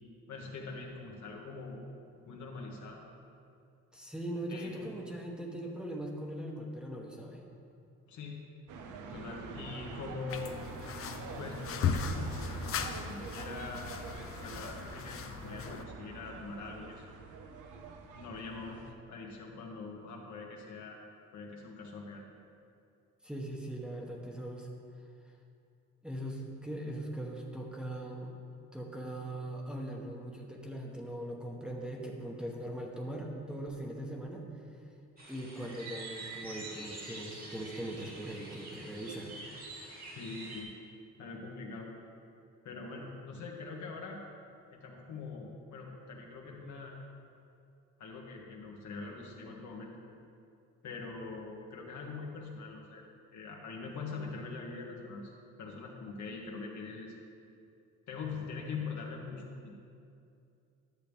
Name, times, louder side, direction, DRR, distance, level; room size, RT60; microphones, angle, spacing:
voice 1, 0.3-1.8 2.3-3.0 4.5-4.9 8.1-8.4 9.1-11.0 11.3-13.9 14.4-17.1 18.1-18.8 19.1-21.0 21.3-22.2 40.1-40.7 41.2-41.9 42.6-44.2 44.7-47.0 48.0-49.9 50.8-53.0 53.3-55.3 55.6-57.1 58.1-59.7, left 4 dB, 70° left, -1 dB, 1.4 m, -43 dB
voice 2, 3.9-7.4 23.2-24.7 26.0-28.3 28.7-34.5 35.3-39.4, right 1 dB, 5° right, -2 dB, 1.0 m, -40 dB
sound 1, 8.7-18.9, right 4 dB, 80° right, 0.8 m, -45 dB
sound 2, 10.3-15.8, left 6 dB, 50° left, 0.5 m, -37 dB
sound 3, 35.2-40.6, right 2 dB, 30° right, 1.6 m, -46 dB
11.0 x 6.8 x 3.5 m, 2.5 s
cardioid pair, 90°, 30 cm